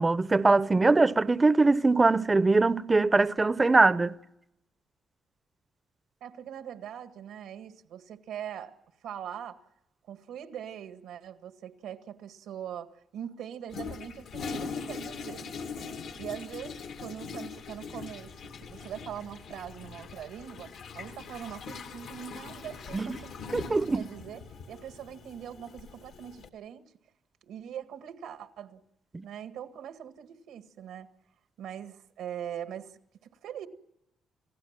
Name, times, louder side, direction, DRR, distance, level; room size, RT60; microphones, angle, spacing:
voice 1, 0.0-4.1 22.9-23.2 23.5-24.1 29.1-29.2, right 3 dB, 25° right, 0.8 m, -22 dB
voice 2, 6.2-8.7 9.0-9.6 10.1-15.5 16.2-18.3 18.6-20.7 20.9-24.4 24.7-26.8 27.4-28.8 29.2-31.1 31.6-33.0 33.4-33.7, right 9 dB, 85° right, 1.8 m, -42 dB
Toilet flush, 13.7-26.5, left 5 dB, 75° left, 2.3 m, -41 dB
30.0 x 16.0 x 7.5 m
cardioid pair, 90°, 0 cm